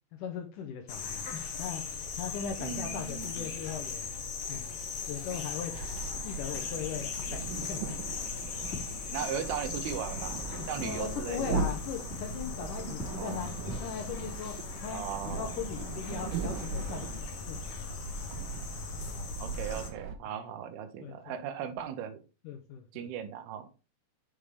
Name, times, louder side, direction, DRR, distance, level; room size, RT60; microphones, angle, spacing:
voice 1, 0.2-1.3 1.6-1.8 2.1-4.1 4.5-4.7 5.1-5.7 6.2-7.9 10.8-13.5 13.8-14.6 14.8-18.0 20.3-20.6 21.0-21.4 22.4-23.1, left 7 dB, 75° left, 4 dB, 1.9 m, -39 dB
sound 1, 0.9-19.9, left 5 dB, 60° left, 1.7 m, -39 dB
voice 2, 2.6-3.5 9.1-10.4 10.7-11.5 13.1-13.4 14.9-15.5 19.4-22.2 22.9-23.7, right 8 dB, 90° right, 10 dB, 2.8 m, -37 dB
sound 2, 5.7-20.1, right 4 dB, 75° right, 2.3 m, -39 dB
Fireworks, 8.5-17.8, left 1 dB, 30° left, 3.1 m, -50 dB
8.9 x 5.3 x 3.3 m, 0.33 s
omnidirectional pair, 4.4 m